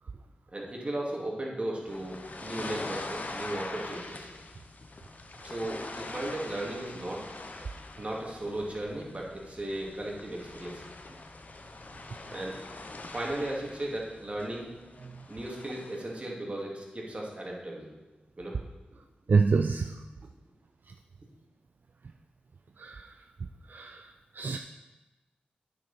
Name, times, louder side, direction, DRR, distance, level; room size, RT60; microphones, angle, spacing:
voice 1, 0.5-4.3 5.4-7.3 8.0-10.8 12.3-12.6 13.1-14.7 15.3-17.9 18.4-18.6, right 1 dB, 40° right, -2 dB, 2.4 m, -36 dB
sound 1, 1.9-16.1, left 2 dB, 50° left, 0.8 m, -43 dB
voice 2, 19.3-20.0 22.8-23.0 23.7-24.0 24.4-24.6, right 4 dB, 65° right, 6 dB, 0.4 m, -26 dB
8.8 x 7.0 x 4.2 m, 1.1 s
cardioid pair, 45°, 3 cm